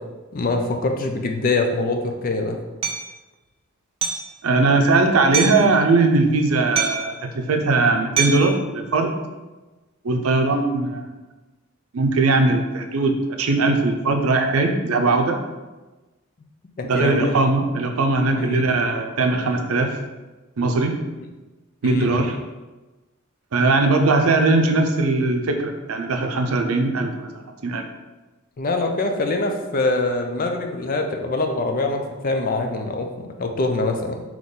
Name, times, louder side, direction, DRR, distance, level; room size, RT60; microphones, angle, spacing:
voice 1, 0.3-2.6 16.8-17.4 18.4-18.7 21.8-22.1 28.6-34.2, left 2 dB, 40° left, 4 dB, 0.5 m, -24 dB
Hammer, 2.8-3.0 4.0-4.3 5.3-5.7 6.8-7.2 8.2-8.5, right 6 dB, 25° right, 0.4 m, -24 dB
voice 2, 4.4-9.1 10.0-11.1 11.9-15.4 16.8-20.0 20.6-20.9 21.8-22.4 23.5-27.3 27.6-27.9, right 3 dB, 85° right, 4 dB, 0.5 m, -20 dB
3.7 x 3.0 x 3.9 m, 1.2 s
head